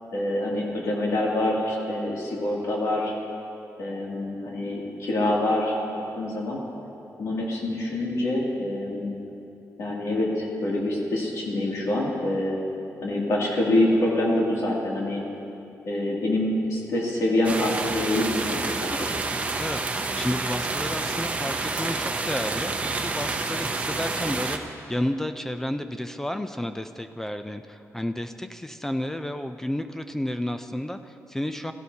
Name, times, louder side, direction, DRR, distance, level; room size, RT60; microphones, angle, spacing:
voice 1, 0.1-3.1 3.8-6.6 7.2-9.2 9.8-12.6 13.0-15.2 15.9-19.1, left 1 dB, 65° left, -4 dB, 2.4 m, -26 dB
sound 1, 17.4-24.6, right 3 dB, 25° right, 0.6 m, -29 dB
voice 2, 19.6-31.7, left 1 dB, 5° left, 8 dB, 0.3 m, -31 dB
17.0 x 15.0 x 2.8 m, 2.8 s
wide cardioid pair, 175°, 6 cm